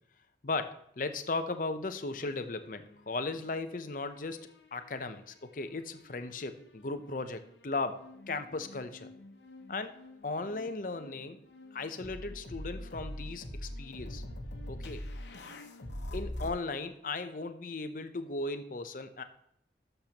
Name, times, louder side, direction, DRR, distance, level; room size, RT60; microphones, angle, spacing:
voice 1, 0.4-8.0 8.3-9.1 9.7-9.9 10.2-11.4 11.7-14.2 14.7-15.0 16.1-19.2, left 3 dB, 50° left, 10 dB, 0.6 m, -37 dB
sound 1, 2.0-3.6 3.9-5.3 6.0-16.5, left 1 dB, 80° left, 1.0 m, -45 dB
11.5 x 6.7 x 2.9 m, 0.75 s
head